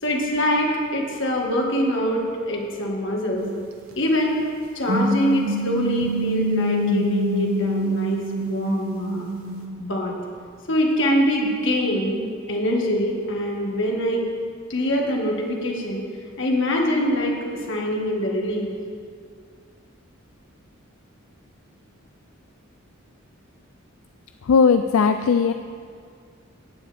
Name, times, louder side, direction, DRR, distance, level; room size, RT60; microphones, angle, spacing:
voice 1, 0.0-3.5 4.0-4.4 4.8-9.3 9.8-10.2 10.7-14.3 14.7-16.0 16.4-17.4 17.7-18.7, equal, 60° left, 0 dB, 1.8 m, -24 dB
sound 1, 3.4-3.6 4.9-9.6, equal, 75° right, 1.3 m, -25 dB
voice 2, 24.4-25.5, left 5 dB, 80° left, 8 dB, 0.4 m, -17 dB
15.0 x 9.5 x 3.5 m, 2.2 s
head